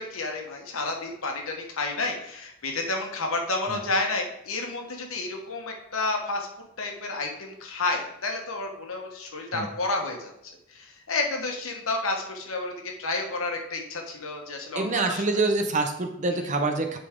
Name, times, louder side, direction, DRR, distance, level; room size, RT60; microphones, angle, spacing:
voice 1, 0.0-6.5 6.8-10.3 10.7-12.7 13.0-15.2, left 3 dB, 70° left, 2 dB, 1.3 m, -30 dB
voice 2, 14.8-17.0, right 3 dB, 35° right, 5 dB, 0.7 m, -26 dB
10.5 x 4.1 x 3.7 m, 0.76 s
head